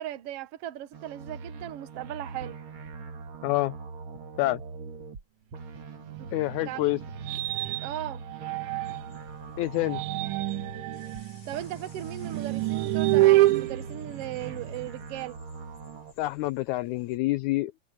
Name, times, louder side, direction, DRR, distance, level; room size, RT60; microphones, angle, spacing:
voice 1, 0.0-2.5 6.2-6.3 6.6-6.9 7.8-8.2 11.5-15.4, right 13 dB, 65° right, 1.7 m, -37 dB
sound 1, 0.9-5.2 5.5-11.2 11.5-16.1, right 4 dB, 45° right, 2.4 m, -42 dB
voice 2, 3.4-3.8 4.4-4.6 6.3-7.0 9.6-10.0 16.2-17.8, left 18 dB, 80° left, 1.8 m, -27 dB
sound 2, 6.1-9.2 9.7-14.9, right 17 dB, 80° right, 2.3 m, -27 dB
sound 3, 8.8-17.2, left 5 dB, 50° left, 3.9 m, -57 dB
omnidirectional pair, 3.7 m